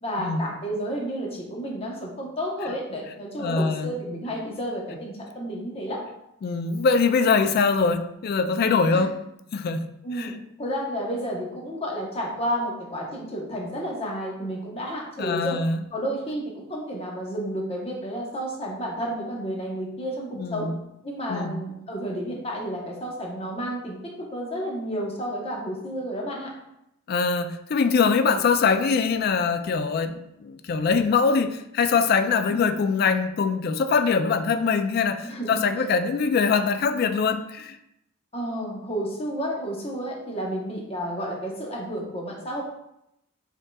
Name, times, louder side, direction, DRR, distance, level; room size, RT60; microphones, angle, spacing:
voice 1, 0.0-6.0 8.9-9.1 10.0-15.6 15.9-20.7 21.0-24.0 24.3-26.5 32.5-32.7 35.2-35.9 38.3-42.6, equal, 30° left, -2 dB, 0.9 m, -31 dB
voice 2, 3.4-4.0 6.4-9.2 9.5-9.9 10.2-10.3 15.2-15.8 20.4-20.7 21.3-21.6 27.1-37.8, left 5 dB, 45° left, 9 dB, 0.3 m, -23 dB
5.4 x 3.7 x 2.3 m, 0.82 s
head